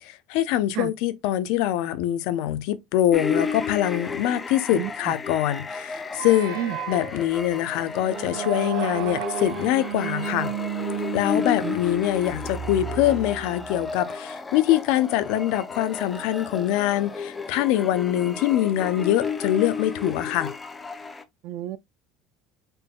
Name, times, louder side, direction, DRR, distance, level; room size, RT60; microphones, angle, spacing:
voice 1, 0.0-6.6 6.9-10.5 11.1-20.5, left 13 dB, 75° left, 0.5 m, -24 dB
sound 1, 3.1-21.2, left 5 dB, 20° left, 0.6 m, -33 dB
voice 2, 4.7-5.1 6.6-6.8 11.3-11.8 21.4-21.8, right 13 dB, 60° right, 0.3 m, -31 dB
sound 2, 6.1-13.9, right 10 dB, 85° right, 0.7 m, -33 dB
4.2 x 3.5 x 2.2 m
cardioid pair, 130°, 0 cm